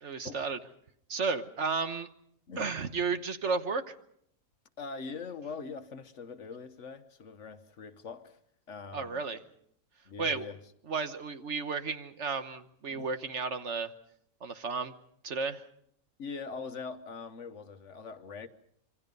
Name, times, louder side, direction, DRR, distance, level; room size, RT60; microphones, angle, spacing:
voice 1, 0.0-0.6 1.1-2.1 2.6-3.9 8.9-9.4 10.2-10.4 10.9-13.9 14.4-14.9 15.2-15.6, right 4 dB, 55° right, 1.3 m, -33 dB
voice 2, 4.8-8.4 8.7-9.2 10.1-10.6 12.9-13.1 16.2-18.5, left 5 dB, 60° left, 1.3 m, -42 dB
27.0 x 24.0 x 5.4 m
omnidirectional pair, 1.5 m